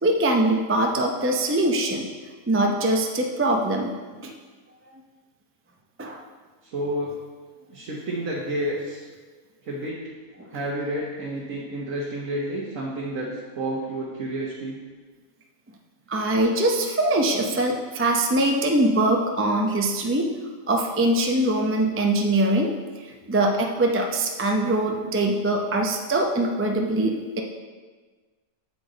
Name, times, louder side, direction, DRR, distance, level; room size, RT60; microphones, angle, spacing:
voice 1, 0.0-2.1 2.5-3.9 4.2-4.3 6.0-6.2 16.1-20.3 20.7-22.7 23.0-27.4, right 1 dB, 20° right, 1 dB, 0.3 m, -22 dB
voice 2, 6.6-7.2 7.7-9.0 9.6-10.0 10.5-14.8, right 1 dB, 65° right, -4 dB, 1.6 m, -30 dB
8.6 x 7.2 x 3.9 m, 1.4 s
omnidirectional pair, 1.6 m